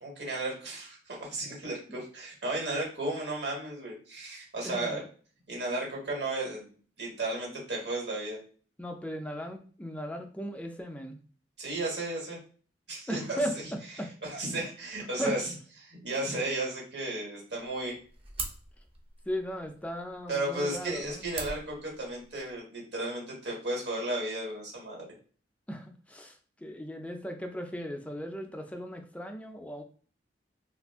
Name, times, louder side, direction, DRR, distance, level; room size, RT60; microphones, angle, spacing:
voice 1, 0.0-5.0 5.5-6.7 7.0-8.4 11.6-12.4 12.9-13.4 14.2-15.5 15.8-17.9 20.3-25.1, right 2 dB, 65° right, -3 dB, 1.4 m, -34 dB
voice 2, 4.6-5.1 8.8-11.2 13.1-14.1 15.2-15.4 19.3-21.2 25.7-29.8, equal, 10° left, 4 dB, 0.4 m, -37 dB
sound 1, 17.6-22.6, right 3 dB, 35° right, 0.7 m, -44 dB
2.7 x 2.4 x 3.4 m, 0.42 s
head